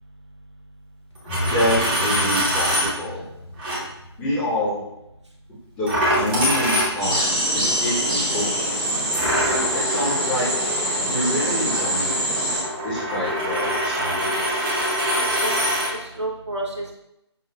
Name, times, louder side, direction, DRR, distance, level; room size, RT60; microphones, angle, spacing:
sound 1, 1.1-5.2, left 1 dB, 80° left, 0.7 m, -33 dB
Coin (dropping), 1.2-2.9 3.6-3.8 5.9-7.3 9.1-15.9, equal, 20° right, 1.0 m, -24 dB
voice 1, 1.5-3.2 4.2-4.9 5.8-8.9 9.7-10.5 11.1-12.1 12.8-14.7, left 1 dB, 10° left, -11 dB, 0.8 m, -27 dB
sound 2, 7.0-12.6, right 1 dB, 5° right, 0.4 m, -24 dB
voice 2, 15.1-16.9, right 2 dB, 80° right, -1 dB, 0.9 m, -31 dB
5.8 x 2.4 x 2.3 m, 0.83 s
figure-of-eight pair, 150°, 14 cm